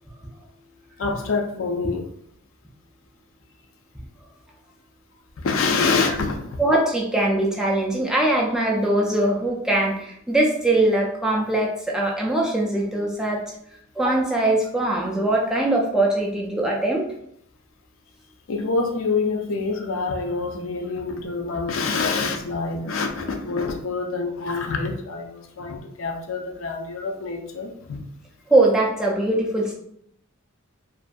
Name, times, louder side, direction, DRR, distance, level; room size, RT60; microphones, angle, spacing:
voice 1, 1.0-2.1 5.4-6.6 18.5-28.0, left 4 dB, 65° left, 3 dB, 0.4 m, -26 dB
voice 2, 6.6-13.4 14.0-17.0 28.5-29.7, right 1 dB, 5° right, -2 dB, 0.3 m, -21 dB
2.5 x 2.5 x 2.2 m, 0.70 s
head